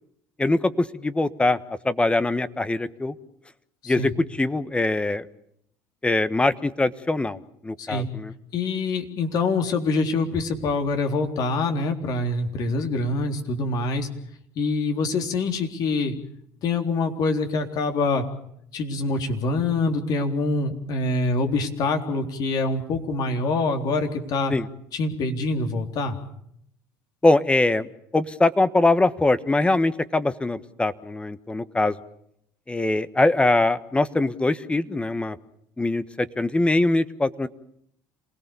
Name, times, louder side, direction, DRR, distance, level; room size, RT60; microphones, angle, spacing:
voice 1, 0.4-1.6 1.8-3.1 3.9-5.3 6.0-8.3 24.5-24.7 27.2-32.0 32.7-35.4 35.8-37.5, left 2 dB, 15° left, 14 dB, 1.3 m, -22 dB
voice 2, 7.8-8.1 8.5-14.1 14.6-16.1 16.6-18.3 18.7-24.5 24.9-26.2, left 3 dB, 60° left, 5 dB, 3.8 m, -25 dB
27.5 x 18.5 x 7.0 m, 0.71 s
supercardioid pair, 80°, 8 cm